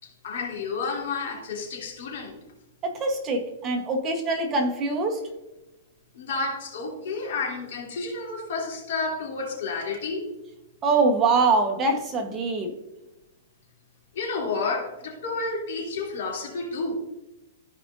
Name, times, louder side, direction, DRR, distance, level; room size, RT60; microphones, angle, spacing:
voice 1, 0.0-2.4 6.1-10.3 14.1-16.9, left 4 dB, 70° left, -1 dB, 2.8 m, -31 dB
voice 2, 2.8-5.2 10.8-12.7, right 3 dB, 20° right, 2 dB, 1.0 m, -24 dB
14.5 x 5.0 x 2.6 m, 0.98 s
supercardioid pair, 165°, 0 cm